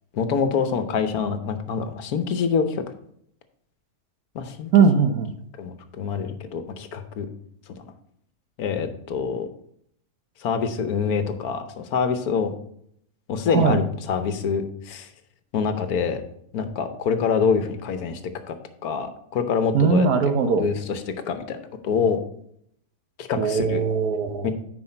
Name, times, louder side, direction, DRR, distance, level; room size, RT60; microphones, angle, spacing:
voice 1, 0.1-2.8 4.3-4.7 5.6-7.3 7.8-7.9 8.6-9.5 10.4-12.5 13.3-15.1 15.5-16.2 16.5-18.2 18.5-18.6 18.8-22.2 23.2-23.8 24.4-24.5, left 6 dB, 75° left, 9 dB, 1.3 m, -26 dB
voice 2, 4.7-5.3 13.5-13.8 19.7-20.7 23.4-24.5, right 5 dB, 75° right, 8 dB, 1.3 m, -20 dB
9.6 x 5.0 x 4.3 m, 0.70 s
omnidirectional pair, 1.6 m